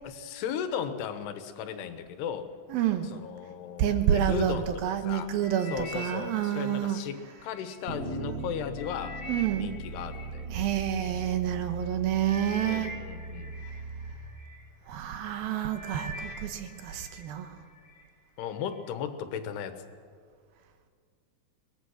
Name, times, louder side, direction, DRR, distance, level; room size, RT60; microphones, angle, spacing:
voice 1, 0.0-2.5 3.0-5.3 5.7-9.2 9.5-10.7 11.1-11.2 12.6-13.5 18.4-19.8, left 8 dB, 85° left, 9 dB, 3.2 m, -36 dB
voice 2, 2.7-3.1 3.8-7.0 9.3-9.8 10.5-12.9 14.9-17.5, right 10 dB, 75° right, 8 dB, 2.8 m, -28 dB
sound 1, 5.4-7.7 8.3-11.1 11.8-11.9 12.2-14.6 15.1-15.4 15.7-17.2 17.6-18.0 18.6-18.7, equal, 25° left, 2.2 m, -44 dB
sound 2, 7.9-14.1, right 3 dB, 25° right, 5.4 m, -39 dB
22.5 x 20.0 x 6.3 m, 2.1 s
omnidirectional pair, 4.6 m